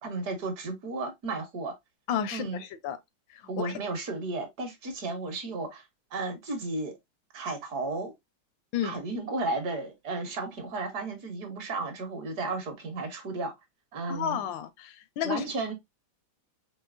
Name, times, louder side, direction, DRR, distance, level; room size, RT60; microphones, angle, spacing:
voice 1, 0.0-1.8 2.3-2.6 3.5-5.9 6.1-7.0 7.3-8.1 8.8-13.5 13.9-14.4 15.2-15.7, right 3 dB, 60° right, 1.4 m, -33 dB
voice 2, 2.1-3.0 3.3-3.7 8.7-9.0 14.1-15.4, left 8 dB, 85° left, 1.4 m, -32 dB
4.8 x 2.8 x 2.4 m
omnidirectional pair, 2.1 m